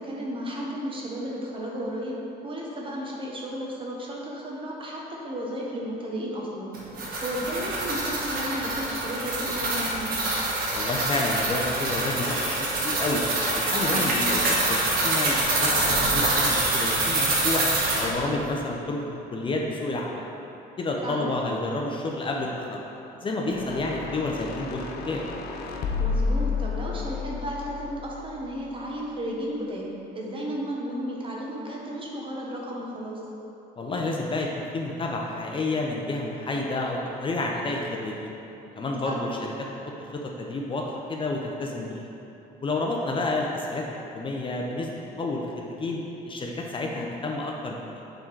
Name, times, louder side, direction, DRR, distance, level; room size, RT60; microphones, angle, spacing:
voice 1, 0.0-2.2 2.4-10.1 13.9-14.2 21.0-21.4 26.0-29.9 30.1-33.2 39.0-39.2 46.8-47.1, equal, 30° right, -3 dB, 1.2 m, -33 dB
sound 1, 6.7-18.1, right 2 dB, 60° right, 1.4 m, -25 dB
voice 2, 10.7-13.2 13.5-17.7 18.0-20.2 20.8-22.8 23.2-25.2 33.8-38.3 38.8-39.7 40.0-42.1 42.6-46.0 46.2-48.0, left 2 dB, 30° left, -1 dB, 0.6 m, -30 dB
sound 2, 23.5-28.8, left 4 dB, 70° left, 0.6 m, -31 dB
6.8 x 3.8 x 4.6 m, 3.0 s
cardioid pair, 110°, 17 cm